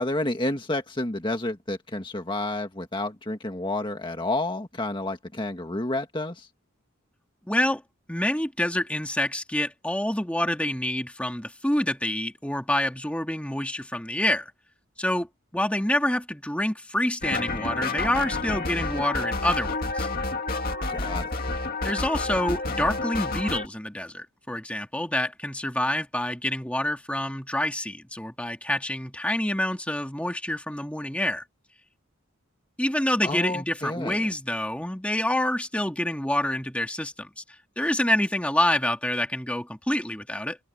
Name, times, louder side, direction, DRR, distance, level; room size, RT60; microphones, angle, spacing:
voice 1, 0.0-6.5 20.9-21.3 33.2-34.3, left 2 dB, 25° left, 1.8 m, -30 dB
voice 2, 7.5-7.8 8.1-14.5 15.0-15.3 15.5-20.1 21.8-31.4 32.8-37.4 37.8-40.6, left 1 dB, 5° left, 2.0 m, -27 dB
sound 1, 17.2-23.7, left 3 dB, 45° left, 2.4 m, -29 dB
head